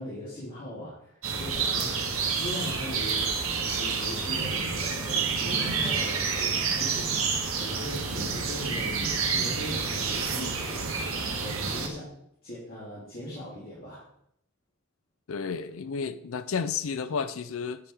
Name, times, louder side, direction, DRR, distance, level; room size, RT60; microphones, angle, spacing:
voice 1, 0.0-7.1 7.5-14.0, equal, 45° left, -10 dB, 3.3 m, -40 dB
sound 1, 1.2-11.9, right 5 dB, 75° right, 1.5 m, -29 dB
voice 2, 15.3-17.8, left 5 dB, 75° left, 13 dB, 0.5 m, -31 dB
9.8 x 5.7 x 4.8 m, 0.73 s
head